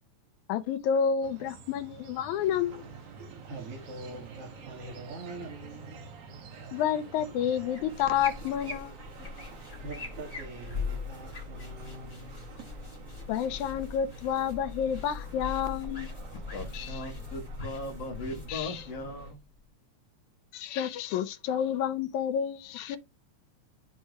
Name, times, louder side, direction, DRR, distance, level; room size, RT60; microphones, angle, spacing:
voice 1, 0.5-2.9 6.7-8.9 9.2-9.3 13.3-16.1 16.7-17.0 18.5-18.8 20.5-23.0, left 8 dB, 85° left, 2.2 m, -30 dB
sound 1, 1.2-8.6, right 5 dB, 70° right, 2.2 m, -51 dB
sound 2, 2.4-19.3, right 5 dB, 85° right, 3.4 m, -49 dB
voice 2, 3.2-6.1 9.3-12.5, right 2 dB, 55° right, 2.5 m, -44 dB
sound 3, 7.7-19.6, left 4 dB, 25° left, 3.2 m, -41 dB
voice 3, 16.3-19.5, left 2 dB, 50° left, 1.7 m, -39 dB
12.0 x 4.3 x 2.2 m
omnidirectional pair, 3.3 m